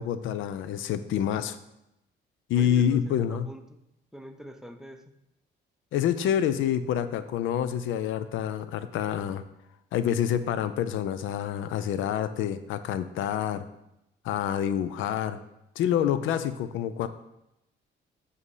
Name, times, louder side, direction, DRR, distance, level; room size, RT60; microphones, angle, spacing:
voice 1, 0.0-1.6 2.5-3.5 5.9-9.4 9.9-13.6 14.2-15.4 15.8-17.1, left 9 dB, 80° left, 12 dB, 0.4 m, -27 dB
voice 2, 2.5-3.8 4.1-5.0, equal, 5° right, 7 dB, 0.5 m, -44 dB
7.3 x 2.7 x 4.8 m, 0.86 s
cardioid pair, 90°, 20 cm